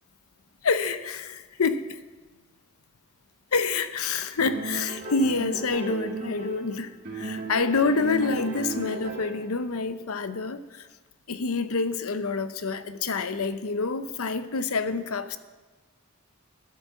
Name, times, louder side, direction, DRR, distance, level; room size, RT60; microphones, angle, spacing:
voice 1, 0.6-2.0 3.5-10.9 11.3-15.4, left 4 dB, 75° left, 11 dB, 0.7 m, -27 dB
sound 1, 4.4-6.7 7.0-9.5, right 3 dB, 50° right, 1.9 m, -35 dB
11.5 x 8.3 x 6.1 m, 1.2 s
head